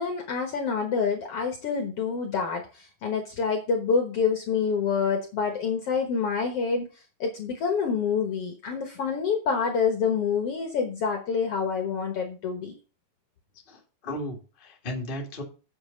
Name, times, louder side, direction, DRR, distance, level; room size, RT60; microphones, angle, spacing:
voice 1, 0.0-6.9 7.2-12.7, left 5 dB, 60° left, 4 dB, 1.7 m, -27 dB
voice 2, 13.7-15.4, left 1 dB, 25° left, 0 dB, 1.2 m, -35 dB
8.0 x 7.1 x 5.1 m, 0.34 s
omnidirectional pair, 3.9 m